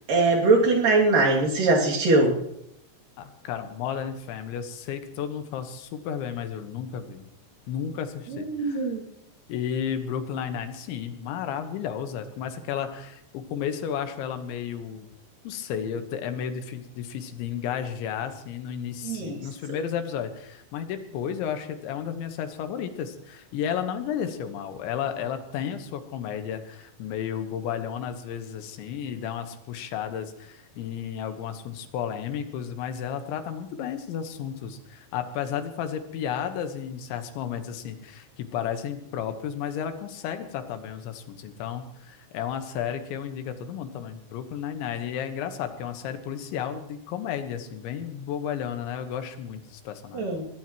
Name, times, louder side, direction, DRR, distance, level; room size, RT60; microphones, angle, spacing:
voice 1, 0.1-2.4 8.3-9.0 19.0-19.4 50.1-50.5, right 3 dB, 50° right, -2 dB, 3.9 m, -21 dB
voice 2, 3.2-7.3 7.7-8.9 9.5-15.1 15.5-50.3, left 8 dB, 90° left, 8 dB, 3.6 m, -33 dB
22.5 x 18.0 x 3.1 m, 0.76 s
omnidirectional pair, 5.2 m